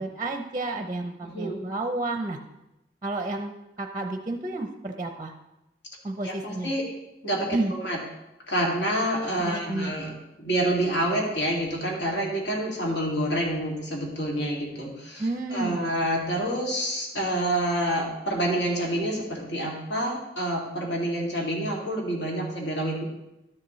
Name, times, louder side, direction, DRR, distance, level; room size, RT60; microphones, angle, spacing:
voice 1, 0.0-2.4 3.0-3.5 3.8-5.3 6.0-6.7 7.5-7.7 9.4-9.9 15.2-15.8, right 2 dB, 25° right, 5 dB, 0.5 m, -30 dB
voice 2, 1.2-1.6 6.2-6.8 7.2-8.0 8.5-23.0, right 1 dB, 75° left, -2 dB, 2.2 m, -28 dB
12.5 x 7.3 x 3.1 m, 0.94 s
head